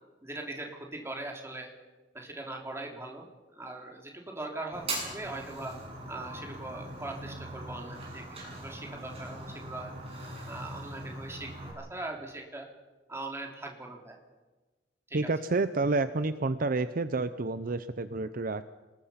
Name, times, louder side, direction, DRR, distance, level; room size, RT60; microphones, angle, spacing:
voice 1, 0.2-1.7 2.1-3.3 3.6-5.7 6.1-9.9 10.4-12.7 13.1-14.2 15.1-15.2, right 2 dB, 15° right, 1 dB, 3.4 m, -40 dB
Fire, 4.7-11.7, right 2 dB, 35° right, 7.2 m, -41 dB
voice 2, 15.1-18.6, right 3 dB, 50° right, 12 dB, 0.7 m, -29 dB
26.5 x 20.5 x 5.8 m, 1.2 s
head